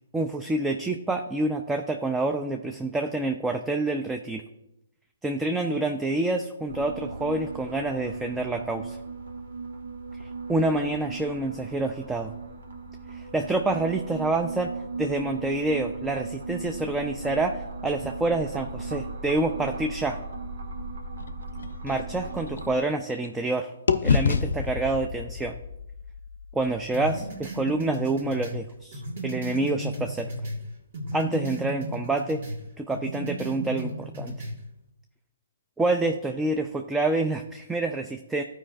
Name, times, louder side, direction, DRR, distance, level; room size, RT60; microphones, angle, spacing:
voice 1, 0.1-4.4 5.2-9.0 10.5-12.3 13.1-14.7 15.0-20.2 21.8-23.7 24.0-25.5 26.5-30.3 31.1-32.4 32.8-34.5 35.8-38.4, right 2 dB, 10° right, 5 dB, 0.4 m, -27 dB
sound 1, 6.7-22.8, right 3 dB, 70° right, 1.5 m, -37 dB
sound 2, 21.2-23.5 23.9-27.8, left 5 dB, 70° left, 0.5 m, -29 dB
sound 3, 26.9-30.6 30.9-32.6 32.9-34.6, right 1 dB, 50° right, 1.9 m, -34 dB
14.0 x 5.0 x 2.5 m, 0.90 s
figure-of-eight pair, 130°, 0 cm